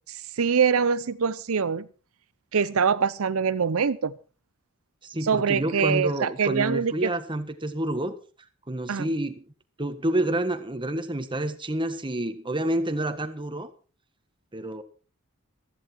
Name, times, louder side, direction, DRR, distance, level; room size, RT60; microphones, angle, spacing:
voice 1, 0.1-1.9 2.5-4.1 5.2-7.1 8.9-9.1, right 6 dB, 80° right, 15 dB, 0.6 m, -24 dB
voice 2, 5.0-8.2 8.7-9.4 9.8-13.7 14.5-14.8, right 1 dB, 25° right, 9 dB, 1.6 m, -28 dB
15.0 x 13.5 x 4.6 m, 0.36 s
head